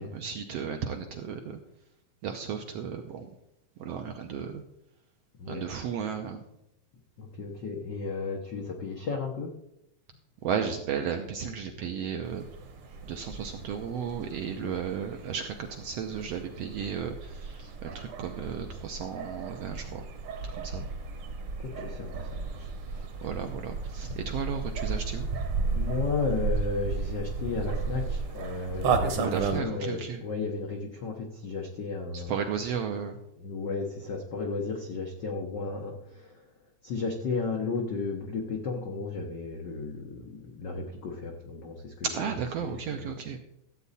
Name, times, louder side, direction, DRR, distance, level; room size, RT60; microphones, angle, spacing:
voice 1, 0.0-1.6 2.2-3.3 3.8-4.6 5.5-6.4 10.4-12.5 13.0-20.0 20.5-20.9 23.2-25.3 29.2-30.2 32.1-33.2 42.0-43.4, right 7 dB, 75° right, 5 dB, 1.5 m, -34 dB
voice 2, 7.2-9.5 14.4-14.7 20.5-20.6 21.6-23.1 25.7-32.3 33.4-36.5 36.8-42.3 42.6-43.0, left 4 dB, 85° left, 2 dB, 0.9 m, -34 dB
sound 1, 12.2-29.6, right 4 dB, 60° right, 1.6 m, -34 dB
13.5 x 8.2 x 4.1 m, 0.83 s
omnidirectional pair, 3.6 m